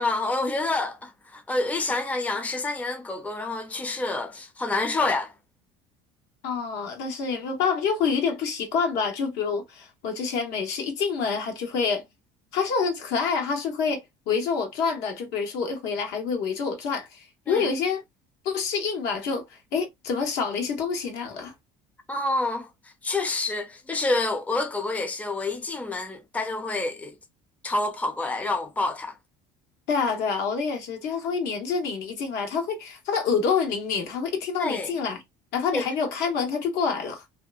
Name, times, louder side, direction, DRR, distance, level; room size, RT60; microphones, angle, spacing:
voice 1, 0.0-5.3 17.5-17.7 22.1-22.7 23.0-27.1 27.6-29.1 34.6-34.9 35.7-35.9, left 2 dB, 10° left, 0.5 m, -28 dB
voice 2, 6.4-12.0 12.5-18.0 18.4-21.5 29.9-35.2 35.5-37.2, left 5 dB, 75° left, 1.0 m, -27 dB
2.7 x 2.2 x 2.3 m
supercardioid pair, 90°, 17 cm